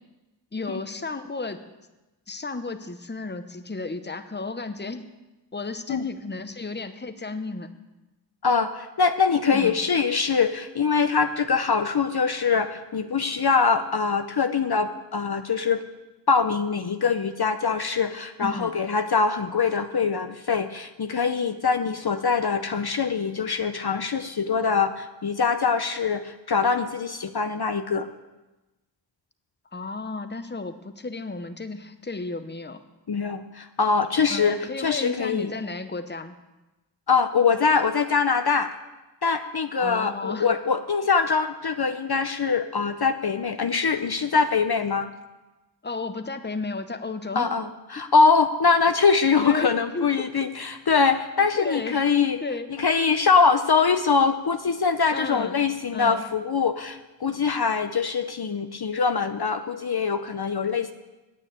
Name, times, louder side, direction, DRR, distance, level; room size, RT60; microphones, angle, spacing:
voice 1, 0.5-1.6 2.3-5.0 5.5-7.7 9.5-9.7 18.4-18.8 29.7-32.8 34.3-36.4 39.8-40.5 45.8-47.5 49.4-50.3 51.6-52.0 52.4-52.7 55.1-55.6 55.9-56.2, left 3 dB, 25° left, 10 dB, 0.8 m, -33 dB
voice 2, 8.4-15.8 16.3-28.1 33.1-35.5 37.1-38.7 39.2-45.1 47.4-52.4 52.8-60.9, left 5 dB, 55° left, 9 dB, 0.7 m, -23 dB
9.3 x 8.8 x 8.8 m, 1.1 s
wide cardioid pair, 55°, 45 cm